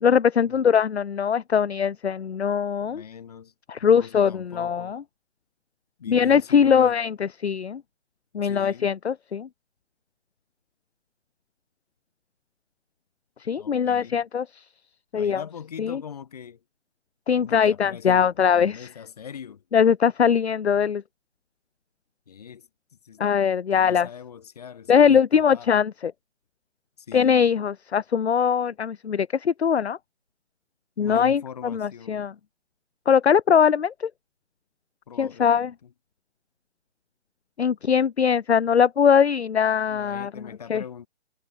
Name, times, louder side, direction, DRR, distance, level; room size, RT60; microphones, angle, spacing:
voice 1, 0.0-3.0 3.7-5.0 6.1-7.8 8.3-9.5 13.4-14.4 15.1-15.4 15.8-16.0 17.3-18.9 19.7-21.0 23.2-24.1 24.9-26.1 27.1-30.0 31.0-31.4 31.7-32.3 33.1-34.1 35.2-35.7 37.6-40.3 40.7-40.8, left 7 dB, 65° left, 0.8 m, -21 dB
voice 2, 2.8-3.5 3.8-5.0 6.0-7.0 8.4-8.9 13.6-14.2 15.1-16.6 17.3-19.6 22.3-22.7 23.0-23.3 23.7-25.7 27.0-27.4 31.0-32.3 35.1-35.9 39.9-41.1, left 7 dB, 35° left, 7.2 m, -42 dB
hypercardioid pair, 175°, 35 cm